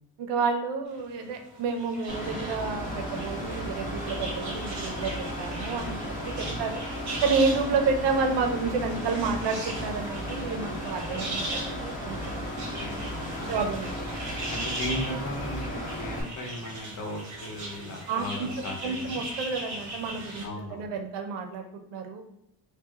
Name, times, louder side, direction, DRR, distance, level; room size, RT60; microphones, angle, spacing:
voice 1, 0.2-6.8 7.2-12.4 13.5-14.0 18.1-18.5 18.8-21.7 21.9-22.3, right 4 dB, 75° right, 6 dB, 0.7 m, -30 dB
sound 1, 0.9-20.5, right 2 dB, 40° right, 1.4 m, -39 dB
Mechanical fan, 2.1-16.2, equal, 20° left, 1.0 m, -35 dB
voice 2, 12.8-13.6 14.5-19.2 20.4-20.9, left 1 dB, 45° left, 1 dB, 1.0 m, -37 dB
4.7 x 2.3 x 2.9 m, 0.80 s
cardioid pair, 145°, 43 cm